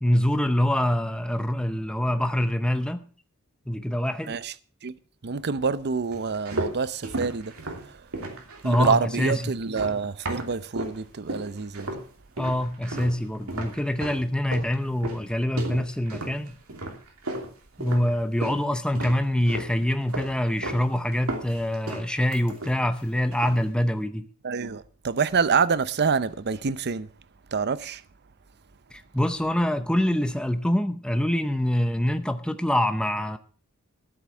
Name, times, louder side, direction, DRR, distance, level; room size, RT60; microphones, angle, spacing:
voice 1, 0.0-3.0 3.7-4.3 8.6-9.4 12.4-16.5 17.8-24.3 28.9-33.4, left 1 dB, 5° left, 0.7 m, -25 dB
voice 2, 5.2-8.1 8.6-11.9 24.4-27.1 27.5-28.0, right 5 dB, 50° right, 0.7 m, -27 dB
sound 1, 6.1-11.0 11.3-12.1 12.4-18.6 18.9-19.7 20.1-20.9 21.1-23.0 23.3-23.7, right 2 dB, 75° right, 2.9 m, -35 dB
14.0 x 8.1 x 6.0 m
head